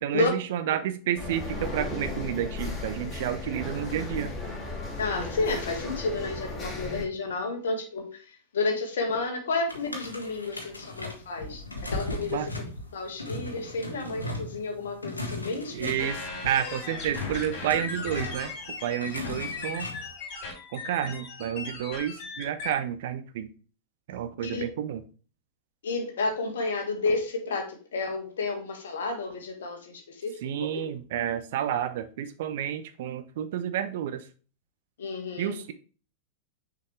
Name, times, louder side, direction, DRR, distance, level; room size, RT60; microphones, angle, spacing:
voice 1, 0.0-4.3 12.3-12.5 15.7-18.5 18.8-19.9 20.7-23.5 24.1-25.0 30.4-34.2 35.4-35.7, right 10 dB, 55° right, 0.8 m, -30 dB
sound 1, 1.2-7.1, left 2 dB, 20° left, 3.3 m, -35 dB
voice 2, 5.0-11.6 11.9-12.6 12.9-15.9 24.4-24.6 25.8-30.8 35.0-35.6, left 3 dB, 65° left, 1.6 m, -31 dB
sound 2, 9.7-20.1, left 2 dB, 80° left, 1.2 m, -38 dB
sound 3, 16.0-22.7, left 4 dB, 45° left, 3.9 m, -38 dB
6.5 x 5.2 x 3.3 m
figure-of-eight pair, 90°, 0 cm